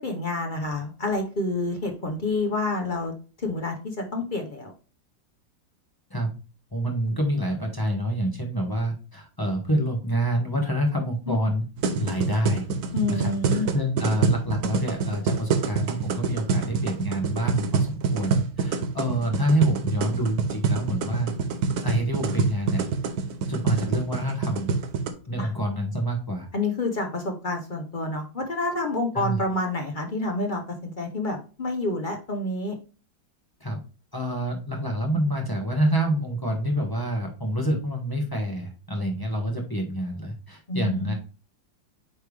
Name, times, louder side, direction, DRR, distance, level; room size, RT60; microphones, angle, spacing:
voice 1, 0.0-3.1 3.4-4.7 11.3-11.4 12.9-13.7 25.4-25.5 26.5-32.8 40.7-41.1, left 2 dB, 50° left, 3 dB, 0.5 m, -28 dB
voice 2, 6.7-11.6 12.0-12.7 13.1-21.3 21.8-22.8 23.5-24.8 25.3-26.5 29.1-29.4 33.6-33.8 34.1-41.1, right 1 dB, 15° left, 0 dB, 1.0 m, -27 dB
sound 1, 11.8-25.1, right 5 dB, 60° right, 1.1 m, -26 dB
8.7 x 3.4 x 3.3 m, 0.35 s
omnidirectional pair, 2.1 m